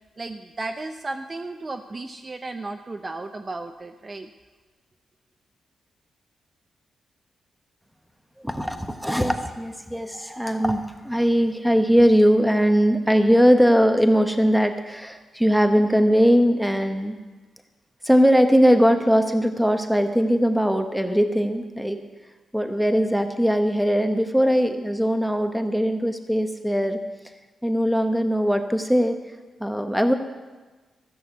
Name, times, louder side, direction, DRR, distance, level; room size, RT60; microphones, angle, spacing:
voice 1, 0.2-4.3, right 2 dB, 30° right, 6 dB, 0.6 m, -34 dB
voice 2, 8.4-17.2 18.0-22.0 22.5-27.0 27.6-29.2 29.6-30.1, equal, ahead, 6 dB, 1.1 m, -20 dB
14.0 x 6.5 x 7.9 m, 1.3 s
cardioid pair, 105°, 0 cm